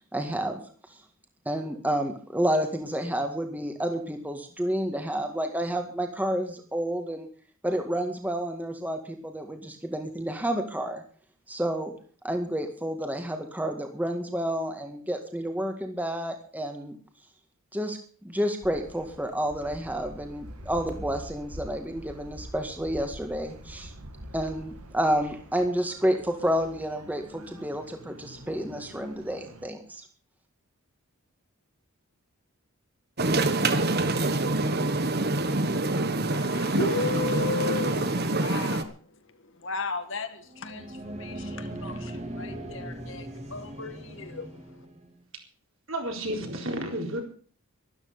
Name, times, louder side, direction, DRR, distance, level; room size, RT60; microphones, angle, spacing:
voice 1, 0.1-0.6 1.5-7.3 7.6-11.0 11.5-11.9 12.2-17.0 17.7-23.9 24.3-30.1, right 1 dB, 5° right, 1.9 m, -30 dB
sound 1, 18.6-29.7, equal, 80° right, 2.2 m, -45 dB
sound 2, 33.2-38.8, right 2 dB, 45° right, 1.3 m, -26 dB
voice 2, 36.3-44.9, left 4 dB, 55° left, 1.8 m, -35 dB
sound 3, 40.5-45.1, right 1 dB, 30° right, 2.2 m, -39 dB
voice 3, 45.9-47.2, right 1 dB, 60° right, 4.2 m, -31 dB
13.0 x 13.0 x 6.7 m
head